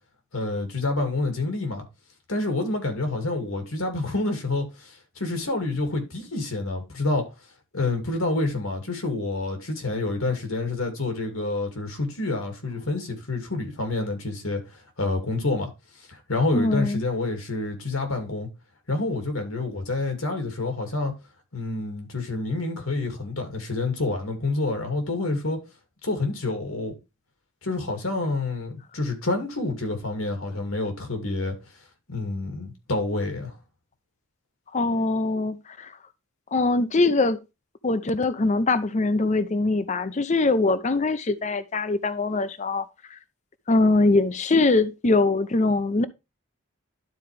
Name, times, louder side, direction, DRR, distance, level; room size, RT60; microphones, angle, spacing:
voice 1, 0.3-1.8 2.3-7.3 7.7-15.7 16.1-18.5 18.9-21.1 21.5-25.6 26.0-26.9 27.6-31.5 32.1-33.5, left 2 dB, 85° left, 2.5 m, -28 dB
voice 2, 16.5-17.0 34.7-35.9 36.5-37.4 37.8-42.8 43.7-46.1, left 3 dB, 35° left, 0.6 m, -22 dB
12.0 x 4.5 x 3.3 m
head